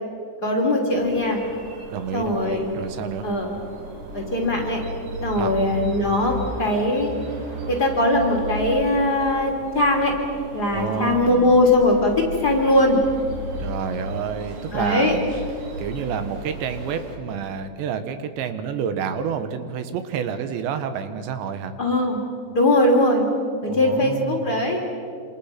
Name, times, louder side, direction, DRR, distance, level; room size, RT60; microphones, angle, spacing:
voice 1, 0.4-1.4 2.1-2.7 3.2-3.6 4.1-4.8 5.2-7.1 7.7-10.1 10.5-13.0 14.7-15.2 21.8-22.2 22.5-23.3 23.6-24.8, left 1 dB, 25° left, -1 dB, 3.2 m, -20 dB
sound 1, 0.9-17.2, right 1 dB, 50° right, 3.2 m, -35 dB
voice 2, 1.9-3.3 5.4-5.6 10.7-11.5 13.6-15.3 15.8-21.7 23.7-24.7, right 7 dB, 80° right, 9 dB, 3.5 m, -29 dB
28.0 x 27.0 x 5.9 m, 2.3 s
omnidirectional pair, 5.1 m